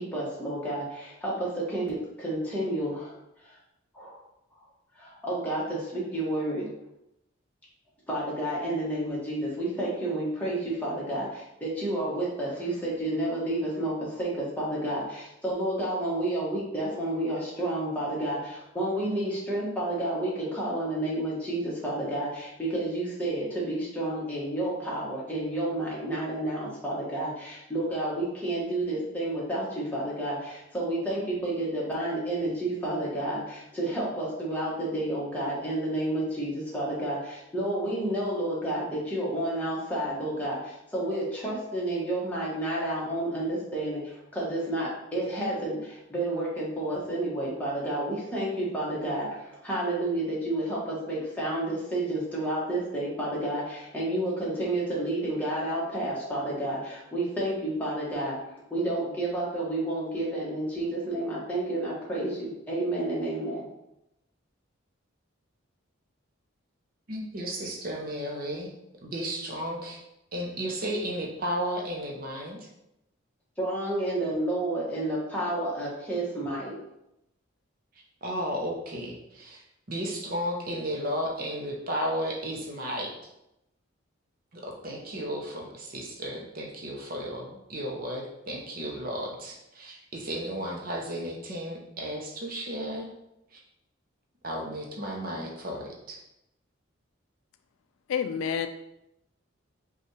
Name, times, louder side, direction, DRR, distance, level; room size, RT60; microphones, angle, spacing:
voice 1, 0.0-3.6 3.9-4.2 4.5-4.6 4.9-6.7 8.1-58.4 58.7-63.7 73.6-76.8, right 1 dB, 5° left, -6 dB, 1.1 m, -30 dB
voice 2, 67.1-68.7 69.0-70.0 70.3-72.6 78.2-79.6 79.9-83.1 84.5-93.1 93.5-93.6 94.4-96.2, equal, 45° right, 0 dB, 0.7 m, -34 dB
voice 3, 98.1-98.7, left 7 dB, 75° left, 9 dB, 0.3 m, -28 dB
5.3 x 2.3 x 3.2 m, 0.85 s
head